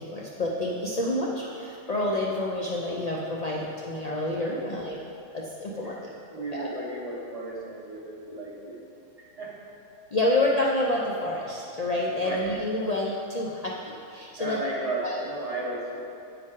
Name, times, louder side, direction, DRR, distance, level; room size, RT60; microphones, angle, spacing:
voice 1, 0.0-5.0 5.3-6.1 6.5-6.7 10.1-14.6 15.0-15.1, left 1 dB, 65° left, -4 dB, 0.3 m, -28 dB
voice 2, 5.8-8.8 9.2-9.6 12.2-12.5 14.4-16.0, right 2 dB, 30° right, -5 dB, 1.0 m, -34 dB
8.5 x 5.3 x 3.7 m, 2.6 s
omnidirectional pair, 1.5 m